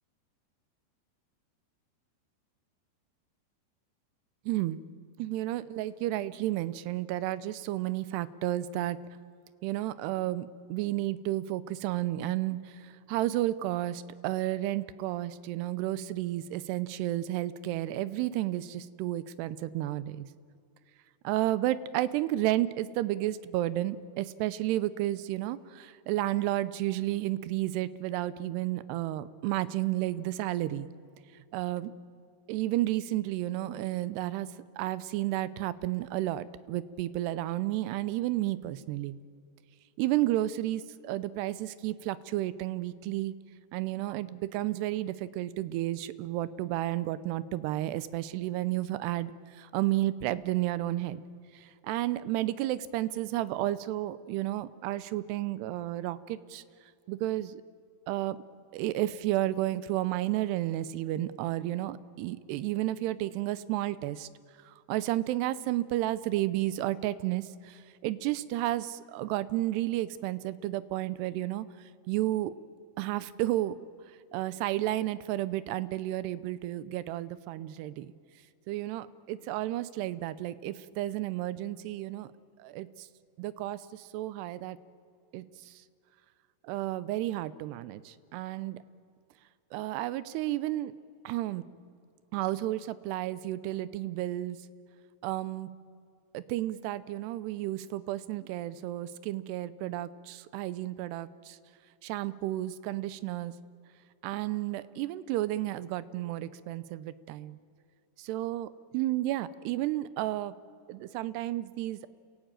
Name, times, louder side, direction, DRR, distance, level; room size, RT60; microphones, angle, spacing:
voice 1, 4.5-4.8 5.2-9.0 9.6-20.3 21.2-30.9 31.5-31.9 32.5-34.5 34.8-39.1 40.0-43.3 43.7-51.2 51.5-56.6 57.1-57.6 58.1-58.4 58.7-64.3 64.7-71.7 72.1-72.5 73.0-73.8 74.3-78.1 78.7-82.3 82.6-83.1 83.4-84.8 85.3-85.7 86.6-88.8 89.7-90.9 91.2-91.6 92.3-94.6 95.2-95.7 96.3-101.6 102.0-103.5 104.2-107.6 108.2-110.6 110.9-112.1, right 15 dB, 85° right, 17 dB, 2.8 m, -32 dB
28.0 x 17.5 x 9.0 m, 2.4 s
omnidirectional pair, 4.8 m